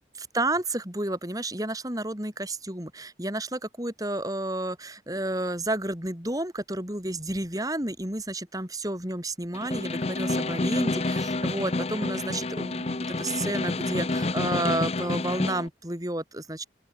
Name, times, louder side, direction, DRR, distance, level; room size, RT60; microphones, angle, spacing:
voice 1, 0.2-16.6, right 1 dB, 20° right, 4.7 m, -31 dB
Snare drum, 9.5-15.7, left 2 dB, 35° left, 0.7 m, -29 dB
open air
head